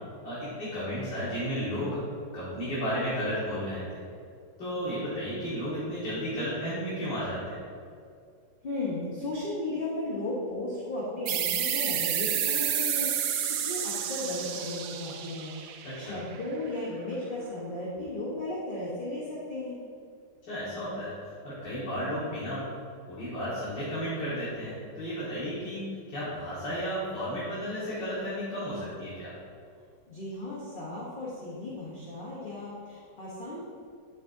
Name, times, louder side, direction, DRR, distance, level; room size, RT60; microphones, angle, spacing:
voice 1, 0.2-2.0 2.3-4.0 4.6-7.6 15.8-16.2 20.4-22.6 23.1-29.3, equal, 75° left, -11 dB, 2.4 m, -33 dB
voice 2, 8.6-19.8 30.1-33.6, left 2 dB, 35° left, -6 dB, 1.1 m, -35 dB
sound 1, 11.3-16.5, right 9 dB, 75° right, 1.2 m, -30 dB
9.1 x 7.4 x 2.7 m, 2.3 s
omnidirectional pair, 1.9 m